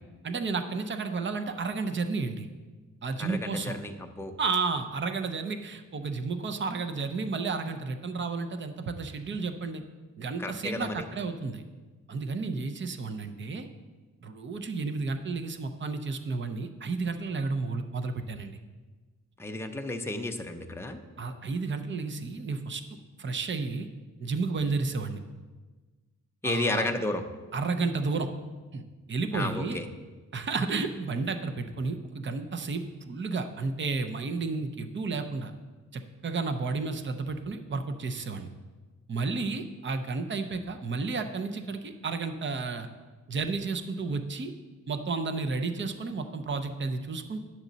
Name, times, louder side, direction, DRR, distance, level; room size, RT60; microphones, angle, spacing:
voice 1, 0.2-2.5 3.0-3.8 4.4-9.8 10.2-11.6 12.1-13.7 14.2-18.6 21.2-22.8 23.2-23.9 24.2-25.2 26.4-26.9 27.5-28.3 28.7-28.8 29.1-29.8 30.3-35.5 35.9-38.5 39.1-42.9 43.3-44.5 44.9-47.4, right 4 dB, 35° right, 8 dB, 0.6 m, -32 dB
voice 2, 3.2-4.3 10.4-11.0 19.4-21.0 26.4-27.2 29.3-29.9, left 2 dB, 10° left, 4 dB, 0.5 m, -32 dB
9.4 x 7.3 x 4.0 m, 1.3 s
wide cardioid pair, 150°, 33 cm